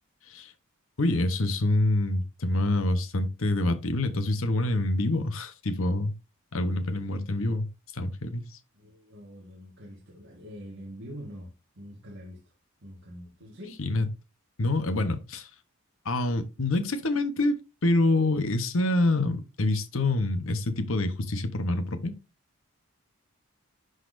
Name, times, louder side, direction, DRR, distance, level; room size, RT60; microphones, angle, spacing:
voice 1, 1.0-6.1 6.5-7.7 7.9-8.6 13.8-14.1 14.6-15.5 16.0-22.1, left 2 dB, 65° left, 1.0 m, -26 dB
voice 2, 8.7-12.5 12.8-13.8, equal, 60° right, 1.6 m, -44 dB
11.0 x 4.1 x 2.6 m
head